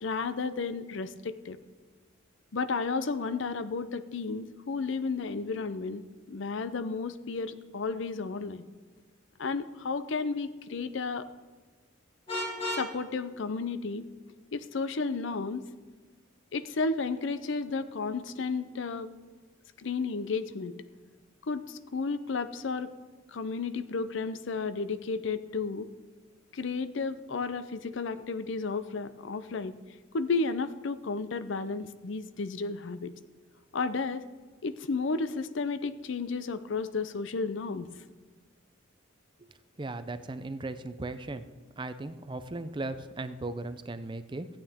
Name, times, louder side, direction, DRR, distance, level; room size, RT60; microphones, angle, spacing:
voice 1, 0.0-1.6 2.5-6.0 6.3-8.7 9.4-11.3 12.7-14.1 14.5-15.6 16.5-19.1 19.8-20.7 21.5-22.9 23.3-25.9 26.5-29.8 30.1-33.1 33.7-34.2 34.6-37.9, left 4 dB, 65° left, 12 dB, 0.5 m, -32 dB
Vehicle horn car horn honking, 12.3-12.9, left 1 dB, 30° left, 2.2 m, -32 dB
voice 2, 39.8-41.4 41.8-44.5, right 2 dB, 25° right, 11 dB, 0.5 m, -37 dB
15.5 x 8.8 x 3.6 m, 1.4 s
head